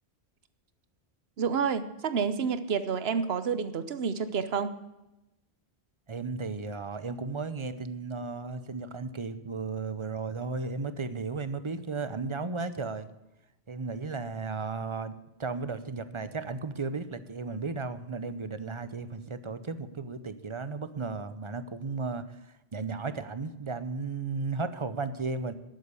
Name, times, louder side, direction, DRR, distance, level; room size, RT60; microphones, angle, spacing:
voice 1, 1.4-4.7, right 6 dB, 75° right, 12 dB, 1.1 m, -29 dB
voice 2, 6.1-13.1 13.7-25.5, right 4 dB, 30° right, 12 dB, 0.7 m, -35 dB
11.5 x 8.5 x 8.3 m, 0.96 s
omnidirectional pair, 1.1 m